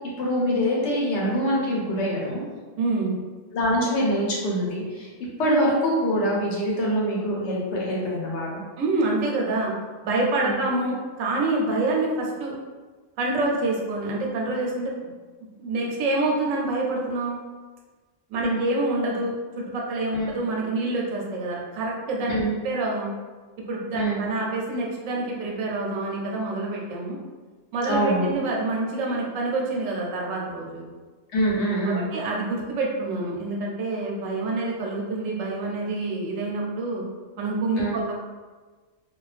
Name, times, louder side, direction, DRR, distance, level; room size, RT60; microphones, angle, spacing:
voice 1, 0.2-2.5 3.5-5.1 5.4-8.6 10.4-10.6 18.4-18.6 20.1-20.3 22.3-22.5 23.9-24.2 27.9-28.3 31.3-32.0 37.8-38.0, equal, 65° left, -4 dB, 0.9 m, -24 dB
voice 2, 2.8-3.2 8.8-9.7 10.0-12.5 13.2-15.1 15.6-17.4 18.3-22.4 22.6-23.1 23.7-27.2 27.7-30.9 31.9-37.0 37.4-38.1, right 2 dB, 85° right, -2 dB, 1.0 m, -27 dB
2.3 x 2.2 x 2.4 m, 1.3 s
omnidirectional pair, 1.3 m